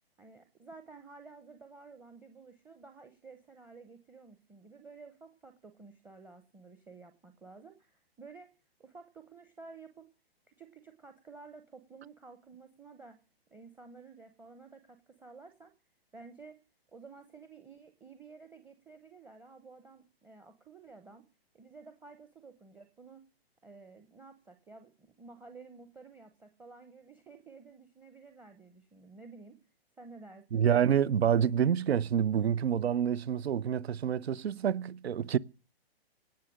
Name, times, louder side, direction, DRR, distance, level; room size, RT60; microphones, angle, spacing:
voice 1, 0.2-8.5 8.8-10.1 10.5-13.2 13.5-15.7 16.1-16.6 16.9-21.2 21.5-23.2 23.6-29.6 30.0-30.6, right 4 dB, 5° right, 0.7 m, -52 dB
voice 2, 30.5-35.4, right 8 dB, 80° right, 0.8 m, -27 dB
18.0 x 6.7 x 9.9 m
hypercardioid pair, 150°, 31 cm